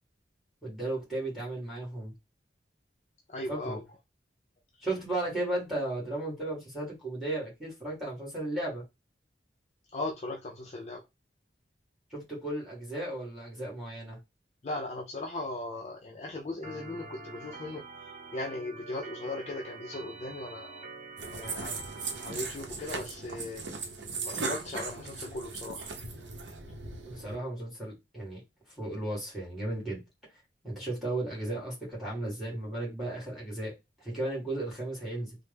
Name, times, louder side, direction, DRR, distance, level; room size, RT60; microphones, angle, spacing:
voice 1, 0.6-2.1 3.5-3.8 4.8-8.8 12.1-14.2 27.0-28.4 28.7-30.0 30.6-35.4, right 1 dB, ahead, 1.6 m, -35 dB
voice 2, 3.3-3.8 4.8-4.9 9.9-11.0 14.6-20.8 21.3-21.7 22.2-23.6 24.2-25.9, left 2 dB, 35° left, 0.4 m, -38 dB
Organ, 16.6-22.3, right 3 dB, 40° right, 1.0 m, -46 dB
sound 1, 21.2-27.4, right 4 dB, 80° right, 0.7 m, -38 dB
3.1 x 2.0 x 3.3 m
head